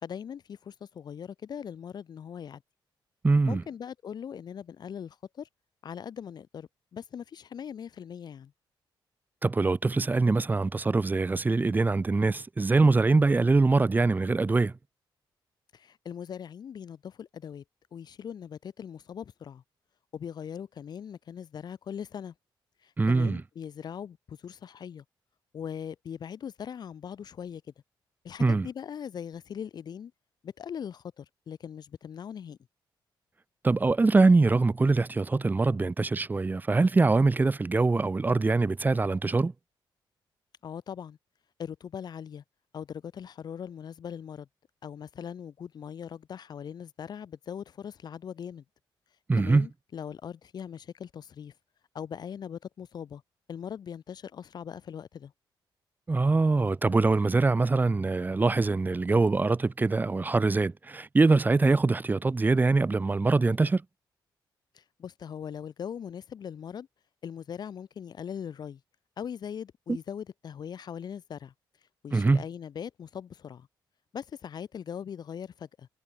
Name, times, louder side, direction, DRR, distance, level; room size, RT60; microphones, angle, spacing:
voice 1, 0.0-2.6 3.4-5.5 5.8-8.5 15.7-17.6 17.9-19.6 20.1-22.3 22.8-25.0 25.5-27.6 28.2-30.1 30.4-32.6 40.6-41.2 41.6-42.4 42.7-44.5 44.8-48.6 49.4-51.5 51.9-53.2 53.5-55.3 64.7-66.9 67.2-68.8 69.2-71.5 72.0-73.7 74.1-75.9, left 8 dB, 55° left, 3.4 m, -40 dB
voice 2, 3.2-3.6 9.4-14.7 23.0-23.4 28.4-28.7 33.6-39.5 49.3-49.7 56.1-63.8 72.1-72.4, right 3 dB, 20° right, 2.3 m, -23 dB
cardioid pair, 130°, 9 cm